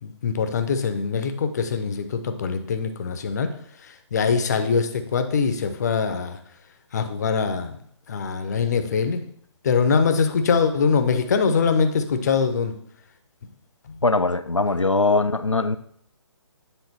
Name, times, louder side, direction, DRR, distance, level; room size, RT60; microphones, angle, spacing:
voice 1, 0.0-3.5 4.1-6.4 6.9-7.7 8.1-9.2 9.6-12.7 13.9-14.0, left 5 dB, 35° left, 0.7 m, -23 dB
voice 2, 14.0-15.8, left 3 dB, 90° left, 0.5 m, -21 dB
9.0 x 3.8 x 4.2 m
figure-of-eight pair, 140°, 15 cm